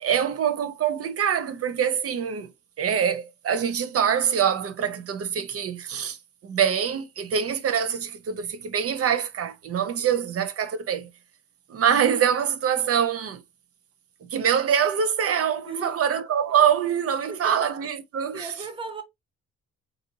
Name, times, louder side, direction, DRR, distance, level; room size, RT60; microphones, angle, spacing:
voice 1, 0.0-2.5 2.8-6.2 6.4-11.1 11.7-13.4 14.3-18.5, right 8 dB, 50° right, 0.6 m, -24 dB
voice 2, 15.6-16.0 17.2-17.6 18.3-19.0, right 3 dB, 15° right, 0.9 m, -37 dB
4.0 x 2.6 x 2.5 m
cardioid pair, 90°, 30 cm